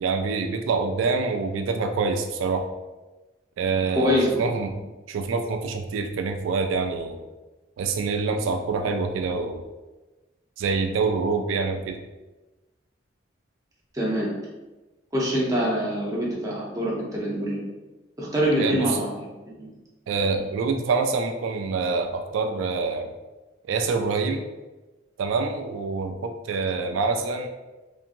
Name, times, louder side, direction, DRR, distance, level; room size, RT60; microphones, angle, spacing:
voice 1, 0.0-2.6 3.6-4.7 5.1-7.2 7.8-9.6 10.6-12.0 18.6-19.0 20.1-23.1 23.7-24.4 25.2-27.5, right 4 dB, 90° right, 5 dB, 0.3 m, -26 dB
voice 2, 3.9-4.5 13.9-14.3 15.1-17.6 18.2-19.3 19.6-19.7 20.3-20.4, equal, 20° right, -4 dB, 0.6 m, -25 dB
2.8 x 2.6 x 2.5 m, 1.1 s
head